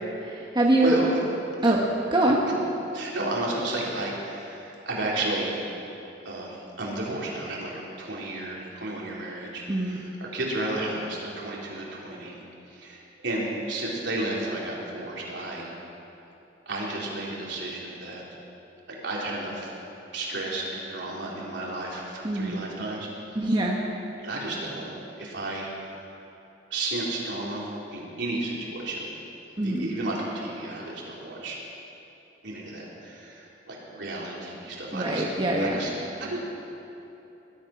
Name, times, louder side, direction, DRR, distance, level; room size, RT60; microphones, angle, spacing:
voice 1, 0.2-1.0 1.6-1.8 2.1-2.4 9.7-10.0 22.2-22.6 23.3-23.8 29.6-29.9 34.9-35.7, right 1 dB, 25° right, -2 dB, 1.4 m, -23 dB
voice 2, 0.7-1.2 1.6-1.8 2.5-2.6 2.9-5.6 6.2-12.4 12.7-15.7 16.7-18.2 19.0-19.7 20.1-23.1 24.2-25.7 26.7-29.1 29.6-31.6 32.4-35.3 35.6-35.9 36.2-36.4, right 2 dB, 70° right, -4 dB, 3.7 m, -32 dB
20.5 x 12.0 x 6.1 m, 2.9 s
head